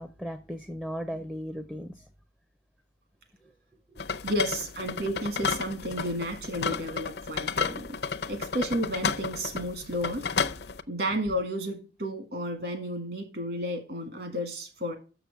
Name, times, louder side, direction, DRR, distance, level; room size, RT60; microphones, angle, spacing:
voice 1, 0.0-2.0 3.9-4.0, equal, 5° right, 0.4 m, -36 dB
sound 1, 4.0-10.8, left 5 dB, 65° left, 0.6 m, -32 dB
voice 2, 4.2-8.0 8.3-10.3 10.9-15.0, equal, 60° right, 1.7 m, -32 dB
6.9 x 6.1 x 6.8 m
head